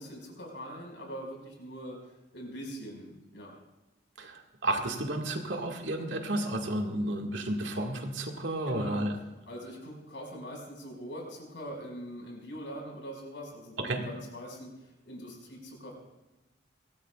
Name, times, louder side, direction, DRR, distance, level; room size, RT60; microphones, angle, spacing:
voice 1, 0.0-2.0 2.3-3.5 8.7-9.1 9.5-15.9, equal, 75° left, 0 dB, 5.7 m, -42 dB
voice 2, 4.2-9.2 13.8-14.0, right 1 dB, 75° right, 2 dB, 2.0 m, -32 dB
23.0 x 18.0 x 2.5 m, 1.1 s
head